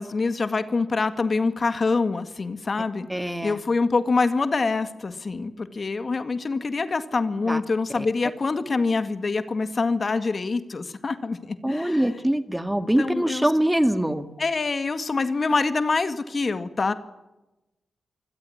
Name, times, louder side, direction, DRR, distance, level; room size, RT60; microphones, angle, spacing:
voice 1, 0.0-3.1 3.4-12.1 13.0-13.5 14.4-16.9, left 4 dB, 45° left, 11 dB, 1.9 m, -25 dB
voice 2, 3.1-3.6 7.5-7.6 8.0-8.1 11.6-14.3, right 1 dB, 5° right, 10 dB, 2.0 m, -23 dB
25.0 x 17.0 x 9.9 m, 0.99 s
cardioid pair, 80°, 0 cm